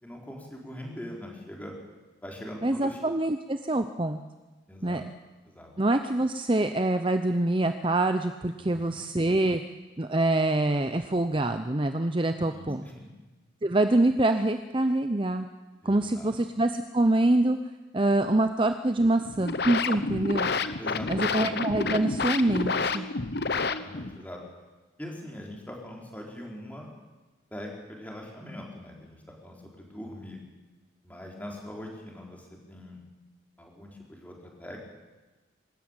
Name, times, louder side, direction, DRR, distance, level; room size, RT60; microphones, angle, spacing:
voice 1, 0.0-1.7 2.2-3.0 4.7-5.0 5.5-5.7 8.6-9.0 12.5-13.1 15.8-16.4 20.1-20.3 20.8-21.4 23.4-24.4 25.0-26.9 27.5-30.4 31.0-33.0 33.6-35.0, left 1 dB, 10° left, -1 dB, 4.1 m, -42 dB
voice 2, 2.6-4.2 4.8-5.0 5.8-9.6 10.0-12.8 13.6-15.5 15.8-17.6 17.9-20.5 21.1-23.1, right 2 dB, 25° right, 7 dB, 0.7 m, -25 dB
sound 1, 19.2-24.2, left 4 dB, 55° left, 1.0 m, -29 dB
24.5 x 13.5 x 9.0 m, 1.2 s
head